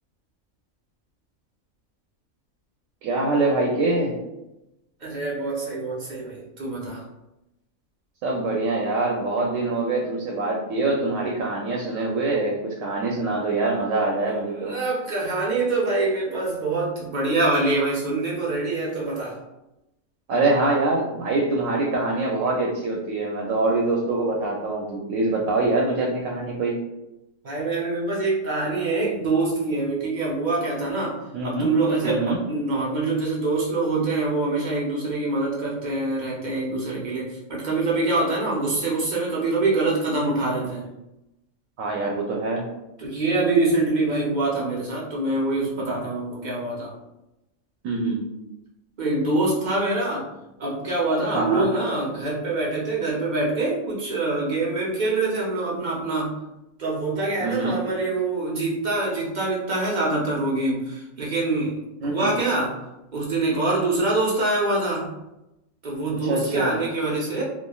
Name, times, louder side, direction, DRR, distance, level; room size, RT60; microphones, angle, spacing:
voice 1, 3.0-4.2 8.2-14.8 20.3-26.8 31.3-31.7 32.0-32.4 41.8-42.7 47.8-48.2 51.3-51.7 57.4-57.8 62.0-62.3 66.2-66.8, right 2 dB, 75° right, -1 dB, 0.9 m, -24 dB
voice 2, 5.0-7.0 14.3-19.4 27.4-31.2 31.4-40.9 43.0-46.9 49.0-50.3 50.6-56.4 56.8-62.7 63.1-65.1 65.8-67.4, right 2 dB, 55° right, -4 dB, 0.5 m, -25 dB
3.1 x 2.3 x 2.2 m, 0.94 s
omnidirectional pair, 1.5 m